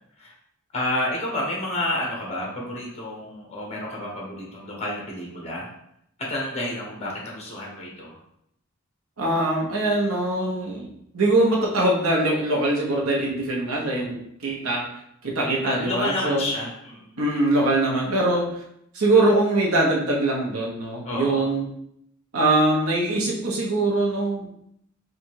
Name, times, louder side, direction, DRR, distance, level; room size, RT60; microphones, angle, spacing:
voice 1, 0.7-5.7 6.2-8.1 15.6-17.1 21.0-21.4, left 1 dB, 30° left, -2 dB, 1.1 m, -30 dB
voice 2, 9.2-14.8 15.2-16.5 17.2-18.5 18.9-21.7 22.3-24.5, right 2 dB, 90° right, -2 dB, 1.1 m, -22 dB
3.8 x 2.6 x 4.6 m, 0.74 s
head